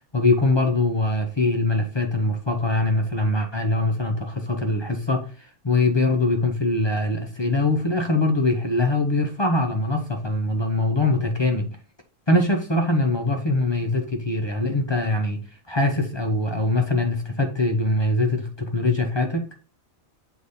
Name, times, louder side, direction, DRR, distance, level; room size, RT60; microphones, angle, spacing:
voice 1, 0.1-11.7 12.3-15.4 15.7-19.5, left 2 dB, 25° left, 0.6 m, -22 dB
7.0 x 3.3 x 4.1 m
omnidirectional pair, 1.4 m